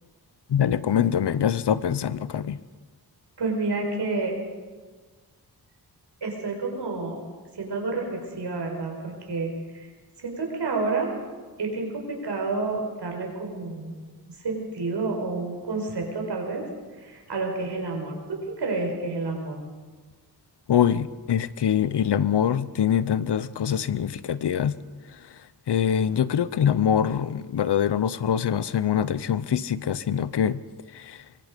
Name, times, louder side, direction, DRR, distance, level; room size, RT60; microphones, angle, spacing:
voice 1, 0.5-2.6 20.7-24.8 25.7-30.6 30.9-31.2, left 9 dB, 90° left, 16 dB, 0.8 m, -24 dB
voice 2, 3.4-4.3 6.2-7.2 7.6-9.9 10.2-11.1 11.6-13.9 14.4-16.6 17.0-19.6, right 3 dB, 85° right, 1 dB, 5.3 m, -29 dB
24.0 x 23.0 x 5.2 m, 1.4 s
wide cardioid pair, 110°, 40 cm